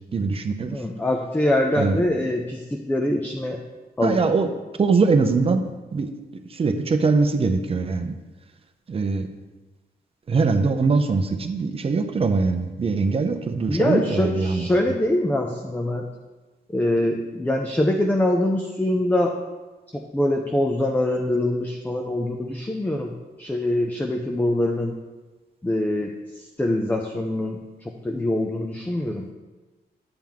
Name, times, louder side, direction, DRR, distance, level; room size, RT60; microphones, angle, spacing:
voice 1, 0.1-0.8 1.8-2.1 4.0-4.5 4.8-5.6 5.9-8.1 8.9-9.3 10.3-14.7, right 4 dB, 35° right, 7 dB, 0.6 m, -22 dB
voice 2, 0.7-3.6 4.0-4.3 13.7-16.1 16.7-19.3 19.9-23.1 23.4-24.9 25.6-29.2, left 1 dB, 10° left, 2 dB, 0.5 m, -24 dB
8.8 x 7.5 x 3.6 m, 1.2 s
wide cardioid pair, 180°, 17 cm